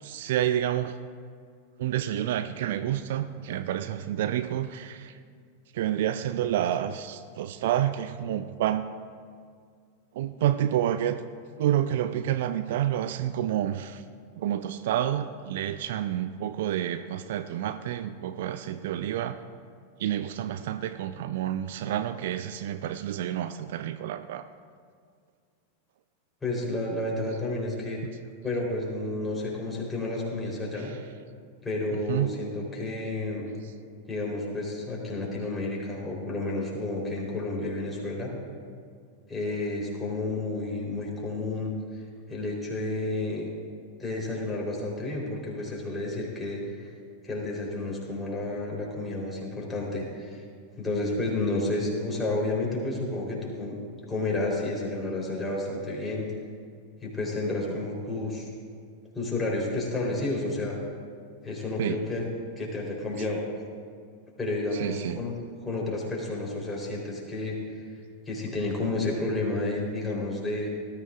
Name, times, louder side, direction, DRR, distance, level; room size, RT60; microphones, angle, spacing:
voice 1, 0.0-1.0 1.8-5.2 5.7-8.9 10.1-11.2 11.6-14.0 14.4-19.4 20.0-24.5 30.7-31.0 31.9-32.3 33.6-33.7 61.8-62.0 64.7-65.2 67.9-68.0, right 11 dB, 55° right, 11 dB, 0.4 m, -29 dB
voice 2, 26.4-28.0 28.4-30.9 31.6-33.5 34.1-38.3 39.3-42.0 42.3-43.5 44.0-46.8 47.2-50.4 50.8-53.8 54.1-56.3 57.0-58.5 59.1-60.8 61.4-62.2 62.6-63.4 64.4-65.3 65.6-67.6 68.3-70.7, left 2 dB, 10° left, -3 dB, 3.5 m, -31 dB
19.0 x 13.5 x 2.4 m, 2.1 s
figure-of-eight pair, 90°, 0 cm